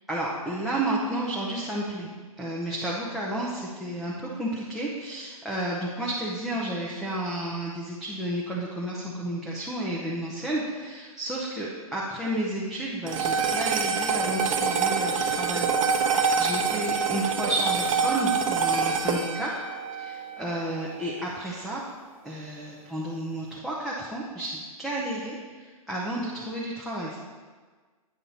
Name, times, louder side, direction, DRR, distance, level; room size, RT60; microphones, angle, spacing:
voice 1, 0.1-15.7 16.1-19.5 20.0-21.8 22.2-27.2, right 1 dB, ahead, -6 dB, 0.7 m, -32 dB
sound 1, 13.1-21.6, right 5 dB, 60° right, 0.9 m, -26 dB
9.2 x 5.4 x 4.2 m, 1.5 s
hypercardioid pair, 140°, 19 cm